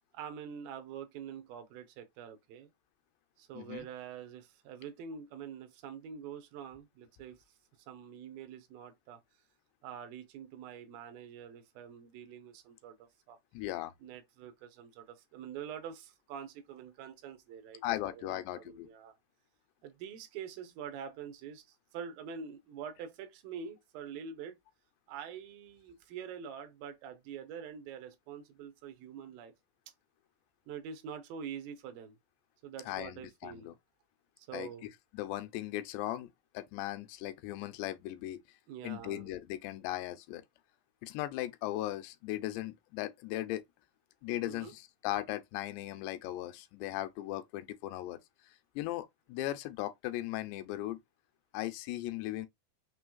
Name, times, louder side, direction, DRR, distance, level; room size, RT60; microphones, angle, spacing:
voice 1, 0.1-2.7 3.4-7.4 7.9-9.2 9.8-13.4 14.0-19.2 19.8-21.6 21.9-24.6 25.1-29.5 30.7-32.2 32.6-33.7 34.4-34.9 38.7-39.3 44.4-44.7, right 7 dB, 75° right, 2.3 m, -45 dB
voice 2, 3.5-3.9 13.5-13.9 17.8-18.9 32.9-33.7 34.5-34.7 35.1-36.3 36.5-38.4 38.8-40.4 41.0-43.6 44.2-48.2 48.8-51.0 51.5-52.5, left 15 dB, 85° left, 2.7 m, -38 dB
6.1 x 3.1 x 2.3 m
omnidirectional pair, 4.9 m